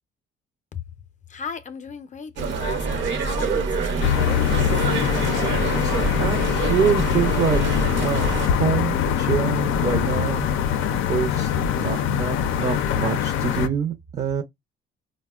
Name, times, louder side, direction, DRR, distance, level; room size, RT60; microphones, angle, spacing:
voice 1, 1.3-4.2, left 5 dB, 40° left, 0.5 m, -36 dB
sound 1, 2.4-8.5, right 4 dB, 70° right, 0.8 m, -26 dB
sound 2, 4.0-13.7, left 9 dB, 90° left, 0.4 m, -23 dB
voice 2, 5.6-10.5 10.7-14.4, right 7 dB, 35° right, 0.5 m, -26 dB
4.0 x 2.1 x 2.3 m
cardioid pair, 90°, 20 cm